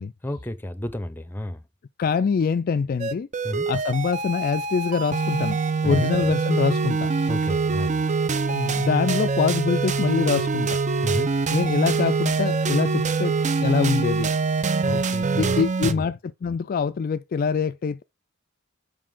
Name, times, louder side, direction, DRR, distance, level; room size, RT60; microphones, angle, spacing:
voice 1, 0.2-1.6 3.4-3.7 5.8-6.1 7.3-8.0 11.0-11.3 14.8-15.5 15.8-16.0, left 1 dB, 10° left, 0.7 m, -31 dB
voice 2, 2.0-3.3 3.7-7.1 8.5-10.8 11.5-13.3 13.6-14.3 15.4-18.0, left 5 dB, 45° left, 0.3 m, -24 dB
sound 1, 3.0-15.9, right 4 dB, 35° right, 0.6 m, -24 dB
7.5 x 5.3 x 3.7 m
head